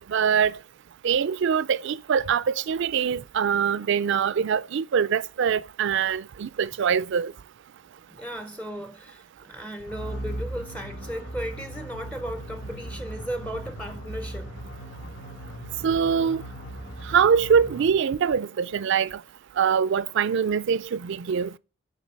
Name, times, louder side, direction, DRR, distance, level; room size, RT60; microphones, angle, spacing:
voice 1, 0.1-0.6 1.0-7.3 15.8-16.4 17.1-19.2 19.6-21.5, right 7 dB, 60° right, 0.4 m, -23 dB
voice 2, 8.1-14.5, equal, 5° left, 0.4 m, -36 dB
sound 1, 9.9-18.1, right 1 dB, 85° left, 4.1 m, -38 dB
9.4 x 4.5 x 5.2 m
head